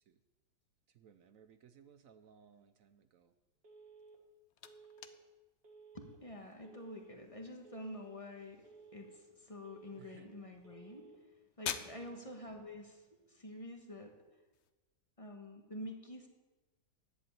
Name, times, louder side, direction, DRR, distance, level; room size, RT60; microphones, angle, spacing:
voice 1, 0.9-3.3 10.0-10.3 12.0-12.3, right 8 dB, 65° right, 11 dB, 0.9 m, -62 dB
Telephone, 3.6-4.2 4.6-5.2 5.6-6.2 6.6-7.2 7.6-8.2 8.6-9.2 9.6-10.2 10.6-11.2 11.6-12.2, right 4 dB, 35° right, 1.7 m, -57 dB
sound 1, 4.0-14.7, left 8 dB, 60° left, 0.7 m, -51 dB
voice 2, 5.9-8.7 8.9-11.1 11.6-14.1 15.2-16.3, left 1 dB, 20° left, 3 dB, 1.4 m, -48 dB
10.5 x 8.3 x 8.7 m, 1.2 s
omnidirectional pair, 1.8 m